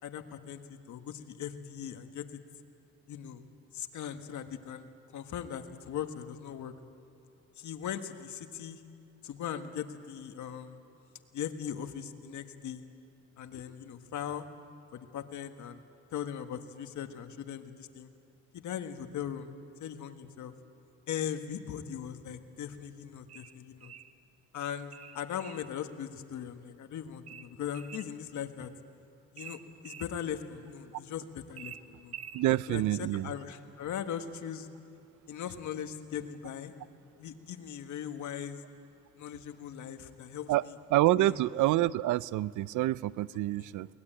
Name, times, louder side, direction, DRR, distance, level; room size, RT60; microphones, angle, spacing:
voice 1, 0.0-2.4 3.1-3.4 3.7-6.8 7.6-8.8 9.2-10.8 11.3-12.8 13.4-14.5 14.9-15.8 16.1-18.1 18.5-19.5 19.8-20.5 21.1-23.9 24.5-28.7 29.3-32.2 32.7-34.7 35.3-36.7 37.2-38.6 39.2-40.7 41.1-41.4 43.6-43.7, left 9 dB, 75° left, 7 dB, 1.5 m, -39 dB
sound 1, 23.3-24.1 24.9-25.7 27.3-28.1 29.4-30.1 31.6-32.5, right 9 dB, 55° right, 0.9 m, -47 dB
voice 2, 32.3-33.3 40.5-40.6 40.9-43.9, right 16 dB, 85° right, 19 dB, 0.5 m, -27 dB
23.0 x 19.5 x 8.9 m, 2.7 s
cardioid pair, 90°, 30 cm